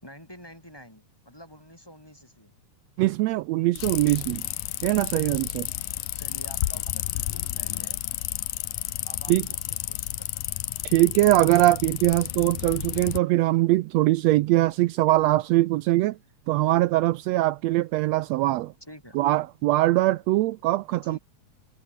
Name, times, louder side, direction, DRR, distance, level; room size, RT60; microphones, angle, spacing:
voice 1, 0.0-2.5 6.1-8.0 9.1-9.6 9.9-10.4 18.8-19.2 21.0-21.2, equal, 5° left, 6.2 m, -48 dB
voice 2, 3.0-4.4 4.8-5.7 9.3-9.5 10.8-16.2 16.5-18.7 19.1-21.2, right 17 dB, 85° right, 1.5 m, -22 dB
sound 1, 3.8-13.2, left 16 dB, 80° left, 2.4 m, -32 dB
omnidirectional pair, 3.7 m